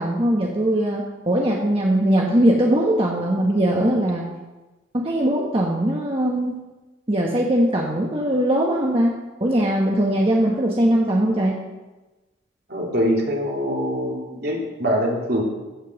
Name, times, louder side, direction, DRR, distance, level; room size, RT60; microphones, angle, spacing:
voice 1, 0.0-4.2 4.9-6.6 7.1-9.1 9.4-11.6, right 1 dB, 30° right, -2 dB, 1.3 m, -20 dB
voice 2, 12.7-15.4, equal, 55° right, -1 dB, 2.8 m, -23 dB
16.0 x 5.8 x 7.1 m, 1.1 s
head